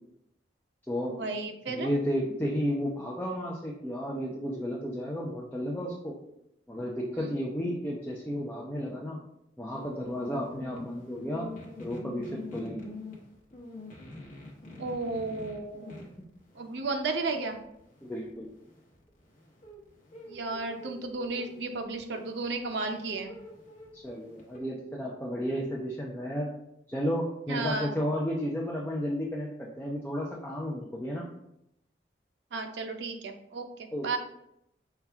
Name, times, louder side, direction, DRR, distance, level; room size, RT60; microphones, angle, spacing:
voice 1, 1.0-1.9 7.1-7.3 14.8-16.1 16.5-17.6 20.3-23.3 27.5-27.9 32.5-34.2, right 3 dB, 80° right, 5 dB, 0.6 m, -34 dB
voice 2, 1.7-6.1 6.7-9.2 9.6-11.5 11.8-12.9 18.0-18.5 23.9-26.5 26.9-31.2 33.9-34.2, equal, 10° left, -3 dB, 0.5 m, -32 dB
sound 1, 9.7-24.6, left 2 dB, 45° left, 1.0 m, -46 dB
5.7 x 2.3 x 3.5 m, 0.80 s
head